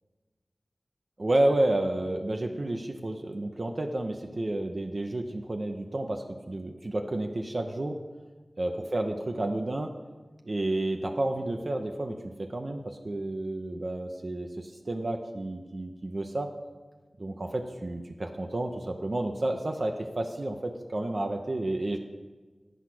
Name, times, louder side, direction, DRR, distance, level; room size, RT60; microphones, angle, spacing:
voice 1, 1.2-8.0 8.6-9.9 10.4-16.5 17.2-22.0, right 1 dB, 55° right, 3 dB, 0.6 m, -30 dB
10.0 x 4.7 x 5.9 m, 1.3 s
wide cardioid pair, 55°, 0 cm